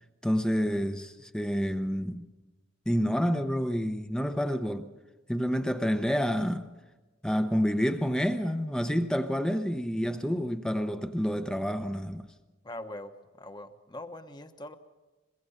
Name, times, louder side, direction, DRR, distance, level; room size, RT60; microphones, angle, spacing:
voice 1, 0.2-2.3 2.9-4.9 5.3-6.7 7.2-12.3, equal, 5° left, 0.8 m, -28 dB
voice 2, 12.6-14.8, left 1 dB, 20° left, 1.2 m, -42 dB
23.0 x 22.5 x 5.7 m
head